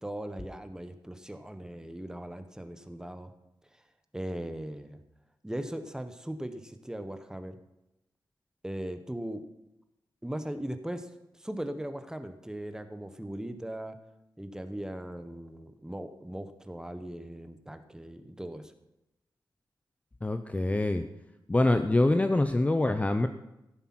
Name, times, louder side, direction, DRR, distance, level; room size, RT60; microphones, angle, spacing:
voice 1, 0.0-3.3 3.7-3.8 4.1-5.0 5.4-7.6 8.6-9.4 10.2-14.0 14.4-18.7, right 1 dB, 10° right, 9 dB, 1.0 m, -39 dB
voice 2, 20.2-21.0 21.5-23.3, left 2 dB, 15° left, 8 dB, 0.6 m, -25 dB
15.0 x 8.0 x 6.1 m, 0.91 s
wide cardioid pair, 120°, 8 cm